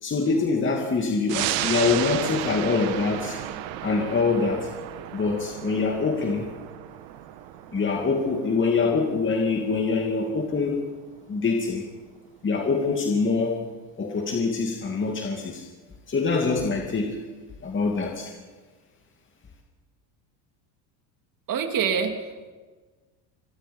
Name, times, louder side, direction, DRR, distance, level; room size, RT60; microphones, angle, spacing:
voice 1, 0.0-3.4 3.8-4.7 5.1-6.5 7.7-10.8 11.3-11.8 12.4-13.6 14.0-15.6 16.1-17.2 17.6-18.3, left 4 dB, 25° left, 1 dB, 2.5 m, -24 dB
sound 1, 1.3-12.3 12.7-12.8, right 13 dB, 75° right, 1.7 m, -34 dB
voice 2, 21.5-22.5, right 6 dB, 40° right, 5 dB, 3.0 m, -26 dB
26.5 x 21.5 x 5.5 m, 1.4 s
supercardioid pair, 115°, 49 cm